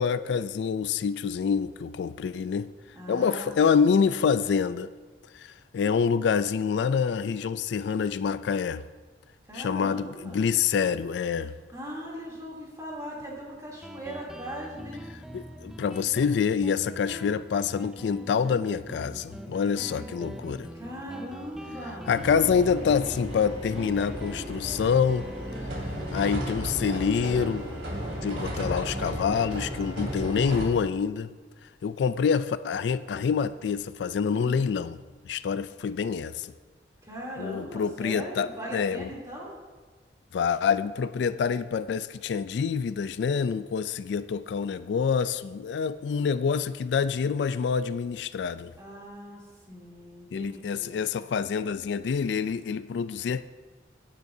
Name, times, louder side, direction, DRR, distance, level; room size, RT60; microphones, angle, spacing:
voice 1, 0.0-2.7 3.1-4.9 5.3-8.8 9.5-11.5 15.3-20.7 22.1-25.3 26.1-27.7 28.2-31.3 31.8-35.0 35.2-36.5 37.4-39.1 40.3-48.7 50.3-53.4, left 6 dB, 75° left, 0.3 m, -26 dB
voice 2, 2.9-4.0 9.4-10.5 11.7-15.0 20.7-22.2 34.3-34.6 37.0-39.5 48.7-51.0, equal, 20° right, 2.9 m, -39 dB
Guitar, 13.8-31.0, equal, 5° right, 0.4 m, -43 dB
sound 1, 22.1-30.6, equal, 90° right, 2.9 m, -35 dB
16.5 x 9.2 x 2.7 m
head